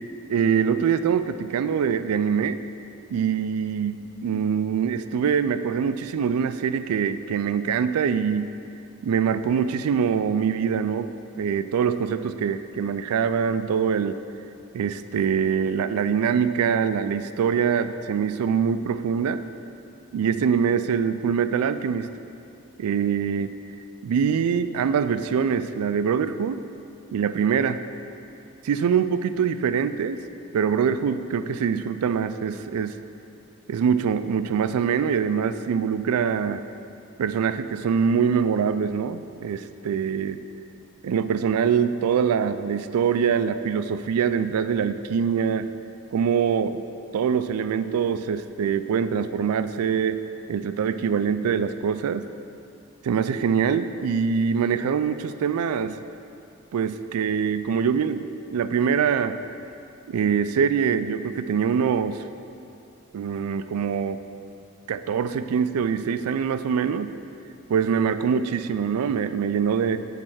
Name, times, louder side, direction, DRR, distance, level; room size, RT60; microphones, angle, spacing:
voice 1, 0.3-2.6 3.1-8.5 9.0-14.2 14.7-19.4 20.1-22.1 22.8-23.6 24.0-26.6 27.1-27.8 28.6-30.2 30.5-33.0 33.7-36.6 37.2-40.4 41.0-45.7 46.1-46.8 47.1-50.2 50.5-52.3 53.0-56.0 56.7-58.2 58.5-59.4 60.1-62.2 63.1-64.2 64.9-67.1 67.7-70.0, right 7 dB, 90° right, 11 dB, 0.3 m, -24 dB
8.5 x 3.3 x 6.2 m, 2.7 s
head